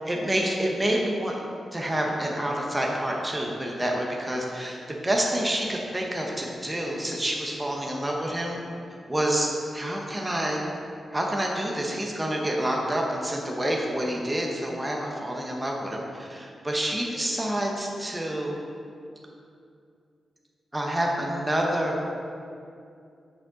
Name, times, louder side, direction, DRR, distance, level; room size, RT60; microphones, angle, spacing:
voice 1, 0.1-1.3 1.7-8.6 9.1-10.6 11.1-18.6 20.7-22.0, right 1 dB, 15° right, -1 dB, 1.0 m, -28 dB
8.2 x 6.3 x 4.0 m, 2.4 s
wide cardioid pair, 100°, 0 cm